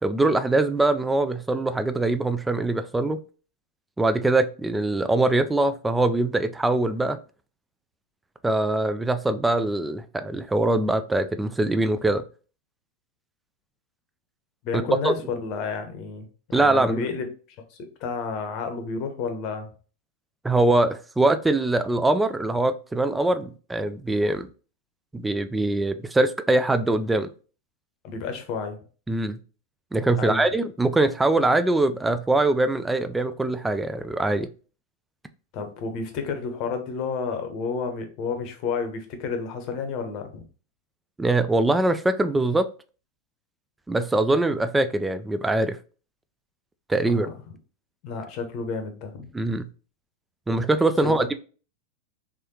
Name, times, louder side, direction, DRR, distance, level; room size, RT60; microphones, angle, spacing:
voice 1, 0.0-3.2 4.0-7.2 8.4-12.2 15.0-15.1 16.5-17.0 20.4-24.5 25.1-27.3 29.1-29.4 29.9-34.5 41.2-42.7 43.9-45.8 46.9-47.3 49.3-49.7 50.5-51.3, right 2 dB, 10° right, 10 dB, 0.3 m, -23 dB
voice 2, 14.6-17.3 17.7-19.7 28.0-28.8 30.2-30.5 35.5-40.4 47.0-47.4 48.0-49.3 51.0-51.3, left 5 dB, 40° left, 6 dB, 0.8 m, -31 dB
3.5 x 3.3 x 2.7 m, 0.37 s
figure-of-eight pair, 90°, 0 cm